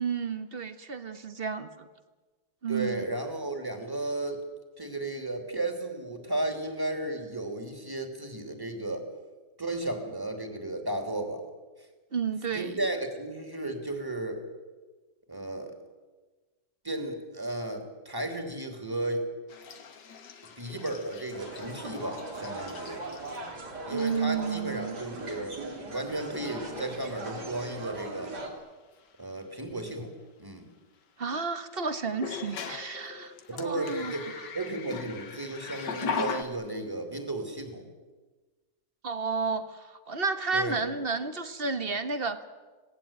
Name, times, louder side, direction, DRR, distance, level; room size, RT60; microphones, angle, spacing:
voice 1, 0.0-1.9 2.6-3.0 12.1-12.8 23.9-25.0 31.2-34.1 39.0-42.5, right 5 dB, 35° right, 10 dB, 1.5 m, -32 dB
voice 2, 2.7-4.4 4.8-9.1 9.6-11.4 12.5-14.4 15.3-15.8 16.8-19.3 20.6-23.0 23.9-28.3 29.2-30.1 30.4-30.7 33.5-34.3 34.5-37.8 40.5-40.8, right 2 dB, 10° right, 5 dB, 3.2 m, -34 dB
sound 1, 19.5-23.6 24.0-24.4 25.4-25.5 25.9-26.4 26.7-27.0 29.0-29.1 32.1-36.4, left 6 dB, 70° left, 2.1 m, -39 dB
sound 2, 21.3-28.5, right 2 dB, 60° right, 3.9 m, -40 dB
26.5 x 18.5 x 9.0 m, 1.3 s
omnidirectional pair, 2.0 m